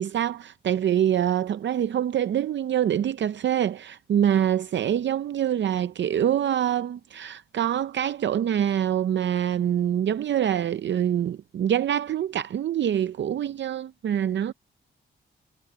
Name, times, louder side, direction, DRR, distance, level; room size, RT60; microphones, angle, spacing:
voice 1, 0.0-14.5, right 10 dB, 65° right, 0.5 m, -25 dB
cardioid pair, 100°, 20 cm